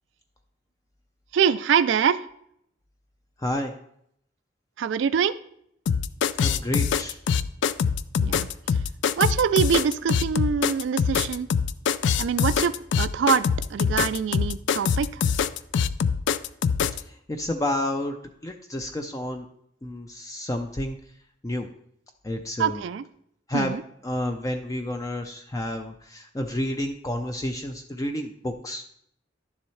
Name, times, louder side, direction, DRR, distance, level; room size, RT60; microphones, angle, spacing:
voice 1, 1.3-2.3 4.8-5.3 8.2-8.5 9.2-11.5 12.2-15.2 22.6-23.0 23.5-23.8, right 7 dB, 85° right, 14 dB, 0.3 m, -24 dB
voice 2, 3.4-3.7 6.4-7.2 16.9-18.2 18.4-19.5 19.8-21.0 21.4-21.7 22.2-22.8 23.5-23.8 24.0-28.8, left 1 dB, 20° left, 5 dB, 0.4 m, -30 dB
sound 1, 5.9-17.0, left 6 dB, 85° left, 0.3 m, -24 dB
11.0 x 7.1 x 3.2 m, 0.71 s
head